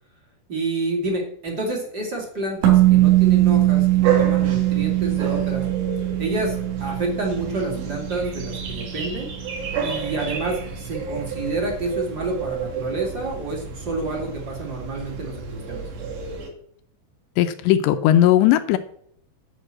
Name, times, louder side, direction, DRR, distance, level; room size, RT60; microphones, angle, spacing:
voice 1, 0.5-5.7 6.2-9.3 9.8-15.9, right 2 dB, 30° right, -1 dB, 2.1 m, -29 dB
sound 1, 2.6-9.1, right 16 dB, 80° right, 5.4 m, -20 dB
sound 2, 2.7-16.5, right 6 dB, 65° right, 4.2 m, -31 dB
voice 2, 17.4-18.8, left 12 dB, 80° left, 9 dB, 2.6 m, -17 dB
11.0 x 6.0 x 7.6 m, 0.65 s
omnidirectional pair, 5.6 m